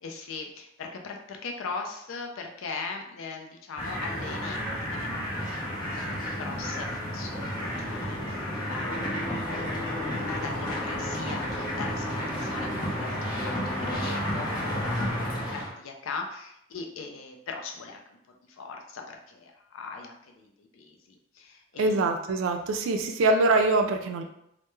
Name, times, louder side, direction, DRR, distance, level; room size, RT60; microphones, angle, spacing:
voice 1, 0.0-5.1 5.7-7.6 7.9-8.4 8.7-9.5 10.3-15.1 15.5-18.0 18.6-22.0, left 4 dB, 80° left, 3 dB, 0.4 m, -40 dB
sound 1, 3.8-15.7, equal, 20° left, 0.6 m, -31 dB
voice 2, 21.8-24.2, right 2 dB, 75° right, 6 dB, 0.3 m, -24 dB
2.2 x 2.1 x 3.0 m, 0.77 s
head